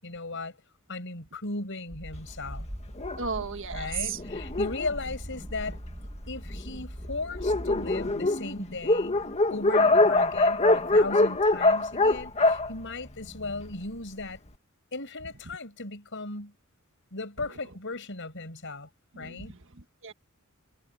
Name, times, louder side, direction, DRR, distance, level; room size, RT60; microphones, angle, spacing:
voice 1, 0.0-0.6 0.9-2.7 3.7-5.8 6.3-9.2 9.5-14.4 14.9-16.5 17.1-18.9 19.1-19.6, left 3 dB, 60° left, 6.3 m, -37 dB
sound 1, 1.9-8.1, equal, 25° right, 2.2 m, -41 dB
Dog, 3.0-6.0 6.7-6.8 7.0-7.1 7.3-13.7, left 2 dB, 30° left, 1.8 m, -24 dB
voice 2, 3.2-4.2 19.1-20.1, right 6 dB, 60° right, 1.6 m, -35 dB
head